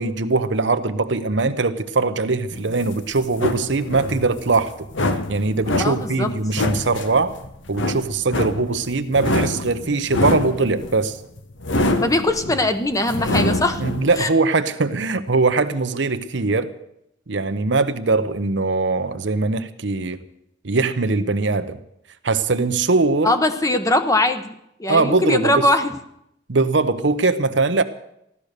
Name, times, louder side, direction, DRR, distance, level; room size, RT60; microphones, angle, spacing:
voice 1, 0.0-4.7 5.3-7.3 7.7-11.2 13.8-16.7 17.3-20.2 20.6-21.8 22.2-23.3 24.9-25.7 26.5-27.8, right 3 dB, 70° right, 10 dB, 0.9 m, -21 dB
sound 1, 2.5-14.2, left 2 dB, 80° left, 1.2 m, -25 dB
voice 2, 5.8-6.3 12.0-13.8 14.2-14.3 23.2-24.5 24.8-25.9, left 1 dB, 20° left, 8 dB, 1.0 m, -20 dB
15.0 x 12.5 x 6.6 m, 0.78 s
head